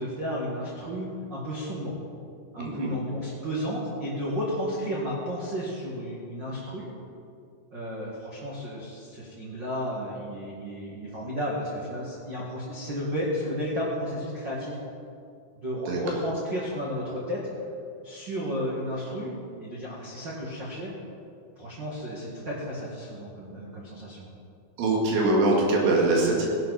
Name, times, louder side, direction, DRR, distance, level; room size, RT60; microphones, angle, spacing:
voice 1, 0.0-2.0 2.5-6.9 7.7-14.8 15.6-17.5 18.0-20.9 21.6-24.2, equal, 45° right, -5 dB, 1.6 m, -33 dB
voice 2, 2.6-2.9 15.9-16.0 24.8-26.5, right 2 dB, 90° right, -2 dB, 4.3 m, -23 dB
17.0 x 12.0 x 4.2 m, 2.4 s
omnidirectional pair, 5.0 m